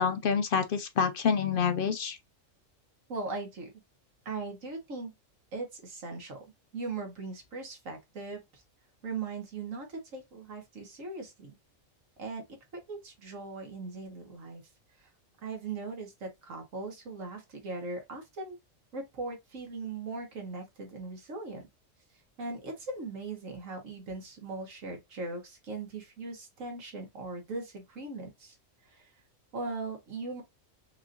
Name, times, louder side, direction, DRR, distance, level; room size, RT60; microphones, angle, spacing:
voice 1, 0.0-2.2, left 6 dB, 60° left, 0.6 m, -27 dB
voice 2, 3.1-3.7 4.2-5.1 5.5-6.4 6.7-8.6 9.0-11.5 12.2-12.4 12.7-14.6 15.0-15.1 15.4-18.6 18.9-21.6 22.4-28.6 28.8-29.1 29.5-30.4, right 3 dB, 75° right, 1.6 m, -39 dB
4.8 x 2.5 x 2.5 m
omnidirectional pair, 1.3 m